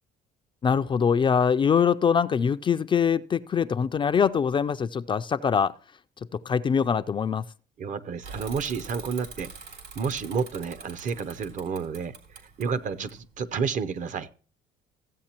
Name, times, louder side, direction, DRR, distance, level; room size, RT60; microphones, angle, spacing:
voice 1, 0.6-5.7 6.5-7.4, left 7 dB, 30° left, 0.3 m, -23 dB
voice 2, 7.8-9.5 9.9-12.1 12.6-14.3, right 6 dB, 50° right, 0.7 m, -30 dB
Bicycle / Mechanisms, 8.2-13.7, right 5 dB, 70° right, 3.0 m, -44 dB
14.5 x 8.0 x 2.9 m
cardioid pair, 110°, 17 cm